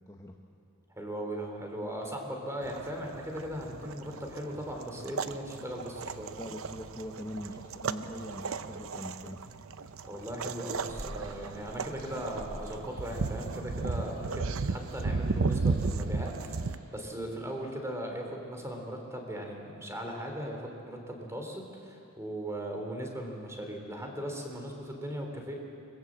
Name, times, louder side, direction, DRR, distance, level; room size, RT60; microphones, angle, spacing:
voice 1, 0.9-6.3 10.0-25.5, equal, 15° right, 2 dB, 3.4 m, -38 dB
sound 1, 2.6-16.8, right 4 dB, 70° right, 0.7 m, -35 dB
voice 2, 6.3-9.4, equal, 15° left, 1 dB, 1.2 m, -42 dB
Ocean, 10.7-17.1, equal, 85° right, 5.5 m, -49 dB
25.0 x 21.0 x 7.5 m, 2.6 s
head